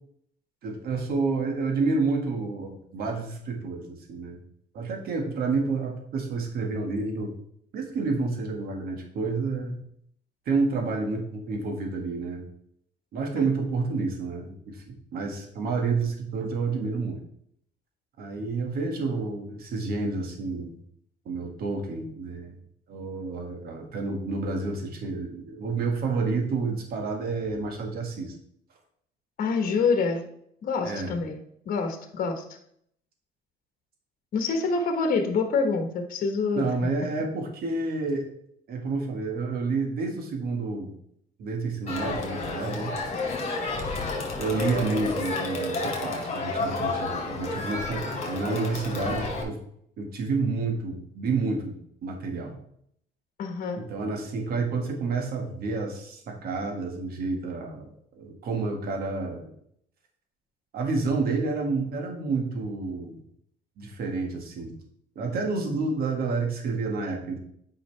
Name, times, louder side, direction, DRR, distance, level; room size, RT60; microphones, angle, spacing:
voice 1, 0.6-4.4 4.7-7.3 7.7-9.8 10.5-12.4 13.1-14.8 15.1-17.2 18.2-20.8 21.3-22.6 22.9-28.3 30.8-31.2 36.6-38.3 38.7-40.9 41.4-43.0 44.4-49.6 50.0-52.6 53.8-57.9 58.2-59.5 60.7-63.2 63.8-64.7 65.2-67.4, right 3 dB, 65° right, 3 dB, 1.7 m, -29 dB
voice 2, 29.4-30.2 30.6-32.4 34.3-36.7 53.4-53.9, left 4 dB, 55° left, 6 dB, 1.3 m, -26 dB
Crowd, 41.9-49.4, left 3 dB, 40° left, 2.5 m, -31 dB
8.8 x 5.5 x 3.4 m, 0.70 s
cardioid pair, 110°, 17 cm